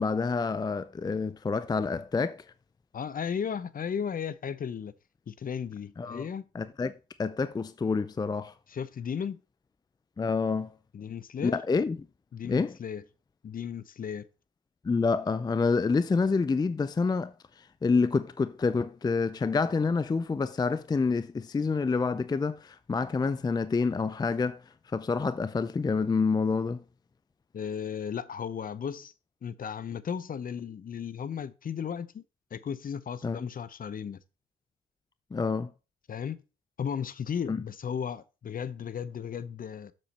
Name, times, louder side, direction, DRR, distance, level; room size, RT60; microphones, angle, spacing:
voice 1, 0.0-2.4 6.0-6.2 6.5-8.5 10.2-10.7 11.4-12.0 12.5-12.7 14.8-24.6 24.9-26.8 33.2-33.5 35.3-35.7 37.5-37.6, left 4 dB, 20° left, 0.5 m, -28 dB
voice 2, 2.9-4.9 5.3-6.4 8.7-9.4 10.9-11.6 12.3-13.0 13.4-14.3 27.5-29.1 29.4-32.2 32.5-34.2 36.1-36.4 36.8-39.9, left 7 dB, 40° left, 0.8 m, -35 dB
7.6 x 7.1 x 4.2 m
supercardioid pair, 65°, 21 cm